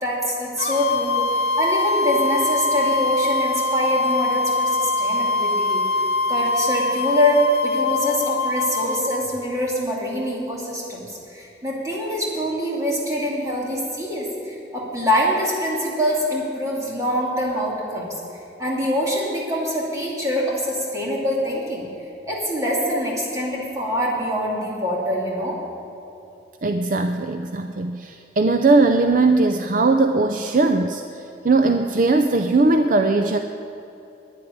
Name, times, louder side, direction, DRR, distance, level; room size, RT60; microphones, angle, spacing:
voice 1, 0.0-5.8 6.3-18.2 18.6-21.8 22.2-25.6, equal, 20° right, -4 dB, 2.7 m, -24 dB
sound 1, 0.6-9.2, left 2 dB, 55° left, 1.1 m, -23 dB
voice 2, 26.6-33.4, right 3 dB, 50° right, 6 dB, 0.5 m, -19 dB
10.5 x 7.9 x 9.8 m, 2.9 s
head